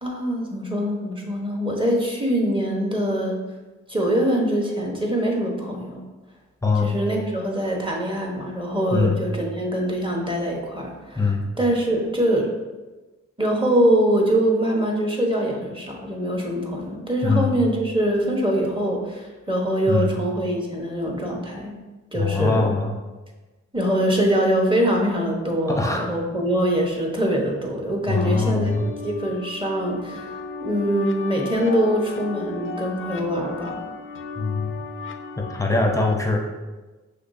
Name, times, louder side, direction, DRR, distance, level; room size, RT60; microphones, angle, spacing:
voice 1, 0.0-3.4 3.9-6.0 6.7-12.5 13.4-21.8 22.1-22.7 23.7-33.8, right 1 dB, 15° right, -1 dB, 1.1 m, -23 dB
voice 2, 6.6-6.9 8.9-9.2 11.2-11.4 17.2-17.5 19.9-20.1 22.1-23.0 25.7-26.1 28.1-28.9 34.4-34.8 35.4-36.4, left 3 dB, 10° left, 1 dB, 0.7 m, -22 dB
sound 1, 28.1-36.1, left 4 dB, 45° left, 0.4 m, -36 dB
5.7 x 3.2 x 2.7 m, 1.2 s
cardioid pair, 50°, 29 cm